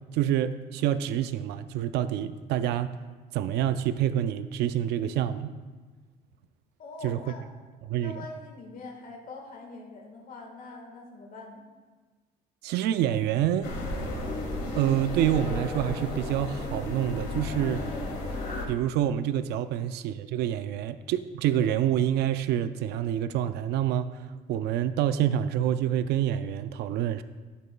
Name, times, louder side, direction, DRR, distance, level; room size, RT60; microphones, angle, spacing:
voice 1, 0.1-2.9 3.3-5.5 7.0-7.2 7.9-8.2 12.6-13.7 14.8-17.8 18.7-27.2, right 11 dB, 80° right, 11 dB, 0.4 m, -27 dB
voice 2, 6.8-7.4 8.0-11.6, left 3 dB, 55° left, 0 dB, 1.6 m, -43 dB
sound 1, 13.6-18.7, left 1 dB, 75° left, 1.8 m, -33 dB
12.5 x 8.3 x 2.3 m, 1.4 s
cardioid pair, 110°, 17 cm